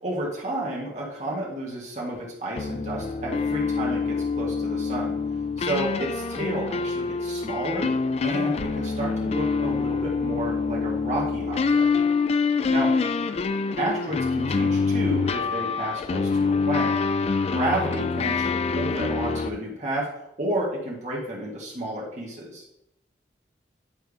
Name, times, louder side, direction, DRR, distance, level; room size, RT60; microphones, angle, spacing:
voice 1, 0.0-5.2 5.6-7.9 8.2-11.9 12.7-12.9 13.8-17.0 17.5-20.1 20.4-22.6, right 1 dB, 40° right, -3 dB, 1.5 m, -31 dB
sound 1, 2.6-19.5, left 4 dB, 35° left, 0.3 m, -25 dB
10.0 x 3.4 x 4.9 m, 0.81 s
head